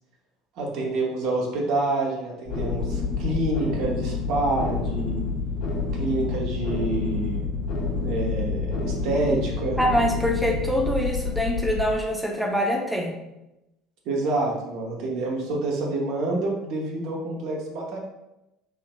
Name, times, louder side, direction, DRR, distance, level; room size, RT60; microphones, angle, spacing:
voice 1, 0.6-5.2 5.9-7.5 8.0-9.8 14.1-18.0, right 2 dB, 60° right, -1 dB, 0.7 m, -27 dB
sound 1, 2.5-11.9, left 4 dB, 55° left, 0.6 m, -28 dB
voice 2, 9.8-13.1, equal, ahead, 0 dB, 0.5 m, -24 dB
3.3 x 2.8 x 2.2 m, 0.92 s
hypercardioid pair, 65°, 0 cm